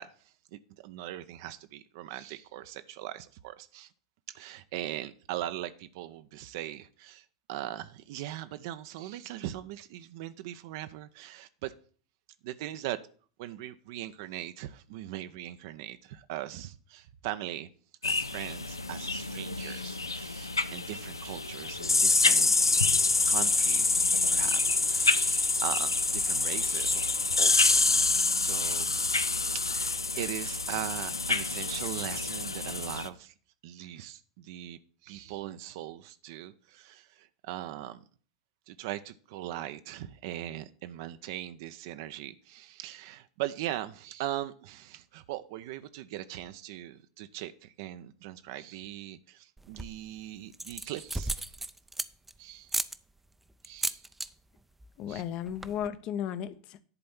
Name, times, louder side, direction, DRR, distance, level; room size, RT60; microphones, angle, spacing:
voice 1, 0.0-3.9 4.3-11.7 12.4-13.0 13.4-17.7 18.0-22.6 23.1-29.0 29.5-33.3 33.6-38.0 38.7-51.5 52.4-52.7 53.6-54.1 55.1-55.2, right 13 dB, 55° right, 0.6 m, -40 dB
sound 1, 18.0-33.1, left 3 dB, 85° left, 0.5 m, -27 dB
sound 2, 49.6-50.1 50.5-52.3 52.7-53.0 53.6-54.3 54.6-54.9 55.1-55.2 55.5-55.9, right 2 dB, 5° right, 0.5 m, -34 dB
voice 2, 55.0-56.8, left 9 dB, 45° left, 0.8 m, -35 dB
10.5 x 4.3 x 7.1 m
figure-of-eight pair, 85°, 2 cm